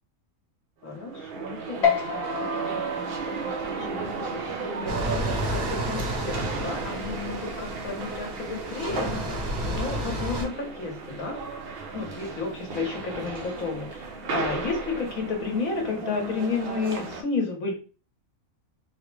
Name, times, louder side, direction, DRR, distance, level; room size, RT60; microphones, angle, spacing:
voice 1, 0.8-9.4 9.7-11.4 11.9-17.7, left 4 dB, 80° left, 1 dB, 1.3 m, -32 dB
sound 1, 0.8-17.2, right 4 dB, 55° right, 0.7 m, -34 dB
sound 2, 1.8-8.6, left 6 dB, 60° left, 0.9 m, -33 dB
sound 3, 4.9-10.4, equal, 90° right, 1.6 m, -31 dB
3.7 x 2.0 x 3.1 m, 0.36 s
omnidirectional pair, 1.4 m